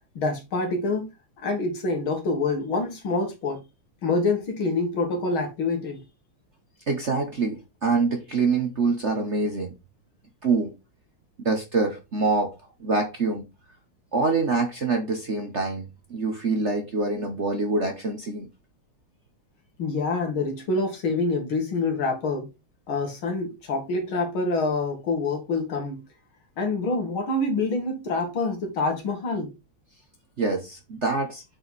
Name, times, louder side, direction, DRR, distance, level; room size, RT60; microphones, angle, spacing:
voice 1, 0.1-1.1 1.4-3.6 4.0-6.0 19.8-22.5 22.9-26.0 26.6-29.5, left 3 dB, 70° left, 2.9 m, -26 dB
voice 2, 6.9-9.7 10.4-10.7 11.4-12.5 12.8-13.4 14.1-18.5 30.4-31.4, right 3 dB, 45° right, 1.0 m, -25 dB
7.8 x 4.6 x 4.0 m
omnidirectional pair, 2.3 m